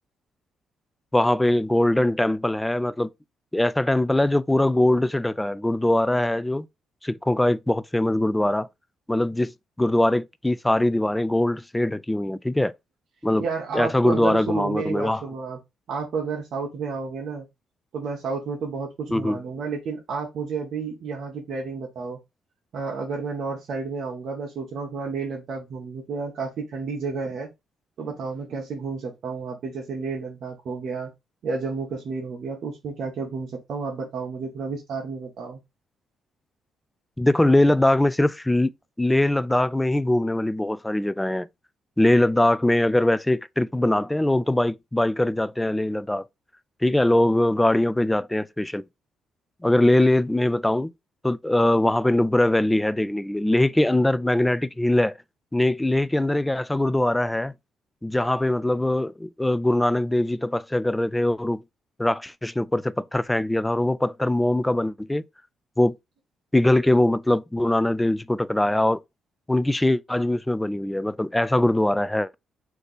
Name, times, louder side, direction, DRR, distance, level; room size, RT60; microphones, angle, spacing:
voice 1, 1.1-3.1 3.5-6.7 7.0-8.7 9.1-9.5 9.8-12.7 13.2-13.4 13.7-15.2 19.1-19.4 37.2-38.7 39.0-41.5 42.0-46.2 46.8-48.8 49.6-50.9 51.2-55.2 55.5-57.5 58.0-61.6 62.0-65.2 65.8-66.0 66.5-69.0 69.5-72.3, left 1 dB, 10° left, 0.4 m, -22 dB
voice 2, 13.4-15.6 15.9-17.5 17.9-22.2 22.7-27.5 28.0-31.1 31.4-35.6, right 4 dB, 65° right, 1.2 m, -31 dB
3.4 x 2.9 x 4.0 m
cardioid pair, 90°, 0 cm